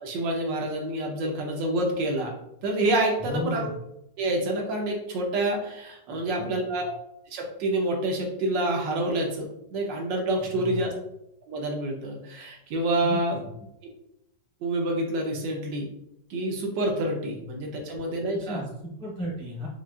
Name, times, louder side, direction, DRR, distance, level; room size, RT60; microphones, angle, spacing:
voice 1, 0.0-2.3 2.6-3.7 4.2-6.9 7.3-10.9 11.5-13.4 14.6-15.9 16.3-18.6, right 1 dB, 80° right, 1 dB, 1.5 m, -27 dB
voice 2, 3.2-3.7 6.4-6.7 10.5-10.8 13.0-13.5 17.4-17.6 18.3-19.7, left 1 dB, 5° left, -4 dB, 0.5 m, -34 dB
5.5 x 2.4 x 2.4 m, 0.80 s
omnidirectional pair, 1.9 m